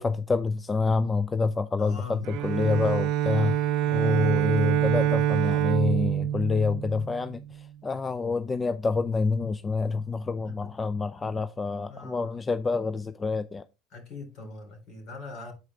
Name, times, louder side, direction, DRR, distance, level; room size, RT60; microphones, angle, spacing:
voice 1, 0.0-3.6 3.9-13.7, left 4 dB, 20° left, 0.4 m, -27 dB
voice 2, 1.8-2.3 3.8-4.2 10.5-10.7 11.9-12.3 13.9-15.5, left 4 dB, 55° left, 3.7 m, -42 dB
Bowed string instrument, 2.2-7.5, right 11 dB, 65° right, 0.7 m, -26 dB
8.0 x 5.0 x 3.7 m
supercardioid pair, 100°, 0 cm